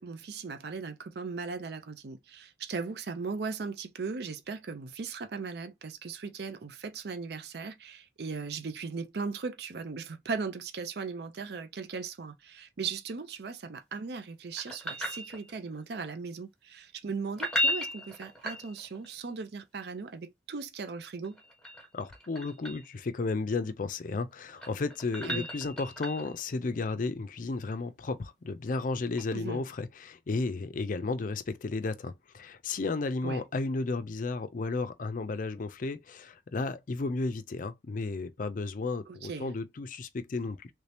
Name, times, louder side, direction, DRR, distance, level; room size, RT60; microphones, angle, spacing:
voice 1, 0.0-21.4 25.3-25.5 29.3-29.6 33.2-33.4 39.1-39.5, right 5 dB, 60° right, 0.5 m, -38 dB
sound 1, 14.6-15.8 17.3-19.1 21.2-22.9 24.3-26.4 29.2-29.3, left 1 dB, 5° left, 1.4 m, -35 dB
voice 2, 21.9-40.7, left 3 dB, 45° left, 0.4 m, -33 dB
3.2 x 2.8 x 3.3 m
head